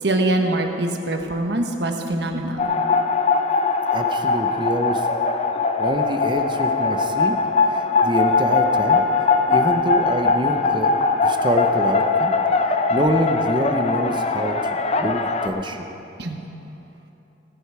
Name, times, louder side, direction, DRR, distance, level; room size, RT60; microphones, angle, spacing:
voice 1, 0.0-2.6 7.9-8.0 16.2-16.4, right 1 dB, 70° right, 4 dB, 1.3 m, -23 dB
sound 1, 2.6-15.5, left 4 dB, 35° left, 0.6 m, -21 dB
voice 2, 3.9-5.1 5.8-7.4 7.7-9.0 9.5-10.9 11.2-12.4 12.9-15.8, right 1 dB, 25° right, 5 dB, 0.7 m, -25 dB
19.0 x 9.9 x 4.8 m, 2.9 s
head